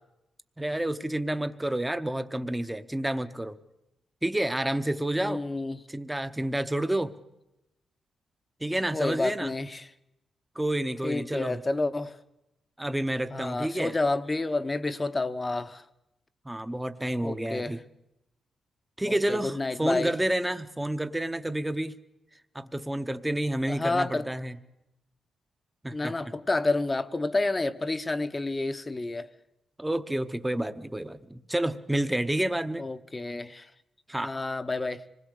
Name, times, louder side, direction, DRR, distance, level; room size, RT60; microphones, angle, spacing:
voice 1, 0.6-3.6 4.2-5.4 5.9-7.1 8.6-9.5 10.6-11.6 12.8-13.9 16.4-17.8 19.0-22.0 22.5-24.6 25.8-26.1 29.8-32.8 34.1-34.4, right 1 dB, 10° right, 0.9 m, -29 dB
voice 2, 5.2-5.8 8.9-9.9 11.0-12.2 13.3-15.8 17.2-17.7 19.1-20.1 23.7-24.3 25.9-29.3 32.8-33.7 34.2-35.0, left 2 dB, 20° left, 0.9 m, -29 dB
26.0 x 20.0 x 6.6 m
wide cardioid pair, 135°, 0 cm